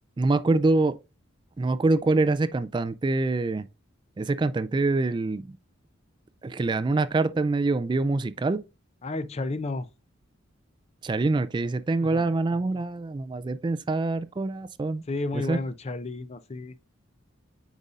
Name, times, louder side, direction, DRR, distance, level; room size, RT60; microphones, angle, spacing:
voice 1, 0.2-1.0 1.6-3.7 4.2-5.6 6.4-8.6 11.0-15.0 15.3-15.6, right 3 dB, 25° right, 0.3 m, -25 dB
voice 2, 9.0-9.9 12.0-12.3 15.1-16.8, left 2 dB, 35° left, 0.5 m, -32 dB
8.1 x 5.2 x 2.4 m
head